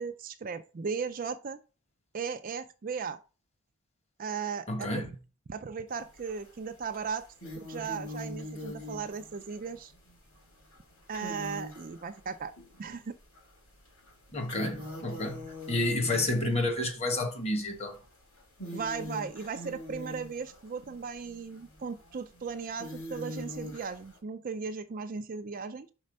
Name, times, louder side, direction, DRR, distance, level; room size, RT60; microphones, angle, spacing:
voice 1, 0.0-1.6 2.1-3.2 4.2-5.1 5.5-7.2 7.6-9.9 11.1-12.5 12.8-13.2 18.7-25.9, right 5 dB, 40° right, 0.4 m, -37 dB
voice 2, 4.7-5.1 14.3-18.0, left 1 dB, 30° left, 1.3 m, -30 dB
sound 1, 5.9-6.5 6.9-12.8 13.4-13.5 13.9-16.8 17.7-18.0 18.4-24.2, left 1 dB, 80° left, 3.7 m, -42 dB
5.3 x 4.3 x 5.1 m
head